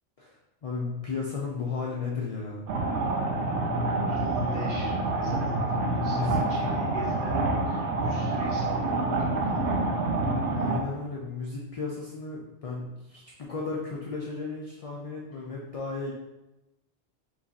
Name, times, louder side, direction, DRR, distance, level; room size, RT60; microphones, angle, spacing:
voice 1, 0.2-2.6 6.0-6.4 10.5-16.1, left 4 dB, 70° left, -2 dB, 0.3 m, -34 dB
sound 1, 2.7-10.8, right 2 dB, 85° right, 0.9 m, -27 dB
voice 2, 4.0-9.7, right 1 dB, 50° right, -7 dB, 1.3 m, -41 dB
3.1 x 2.4 x 3.9 m, 1.0 s
omnidirectional pair, 1.2 m